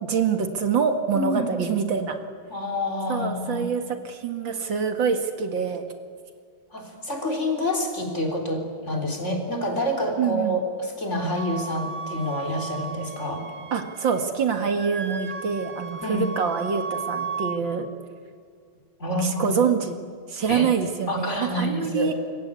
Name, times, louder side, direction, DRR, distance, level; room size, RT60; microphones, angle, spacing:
voice 1, 0.0-2.1 3.1-5.8 10.2-10.6 13.7-17.9 19.2-20.0 20.3-22.1, right 6 dB, 70° right, 6 dB, 2.6 m, -25 dB
voice 2, 2.5-3.7 6.7-13.4 16.0-16.3 19.0-19.5 20.5-20.7 21.1-22.1, left 1 dB, 35° left, 2 dB, 4.2 m, -28 dB
Wind instrument woodwind instrument, 11.4-14.3 14.5-17.6, right 5 dB, 45° right, 2.0 m, -35 dB
26.5 x 23.0 x 8.4 m, 2.1 s
omnidirectional pair, 2.2 m